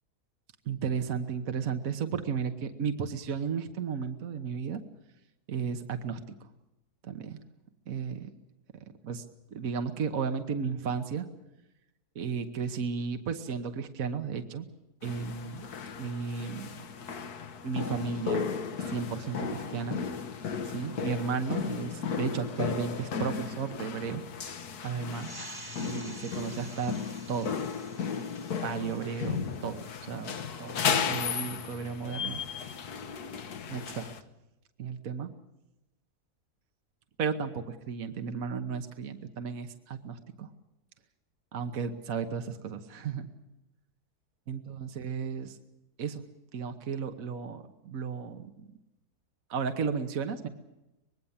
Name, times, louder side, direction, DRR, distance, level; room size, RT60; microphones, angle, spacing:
voice 1, 0.7-4.8 5.5-6.2 7.0-7.4 7.9-8.3 9.0-9.2 9.5-11.2 12.1-14.7 15.0-15.7 16.0-16.7 17.6-18.5 18.9-20.0 20.6-24.2 24.8-25.3 25.8-26.9 27.3-27.5 28.6-30.3 30.6-32.4 33.7-34.1 34.8-35.3 37.2-40.5 41.5-43.3 44.5-45.6 46.0-46.2 46.5-48.5 49.5-50.5, right 6 dB, 60° right, 7 dB, 1.5 m, -34 dB
sound 1, 15.0-34.2, left 6 dB, 75° left, 1.6 m, -35 dB
sound 2, 25.0-30.1, right 1 dB, 15° right, 1.3 m, -49 dB
25.0 x 20.5 x 7.2 m, 0.95 s
omnidirectional pair, 1.7 m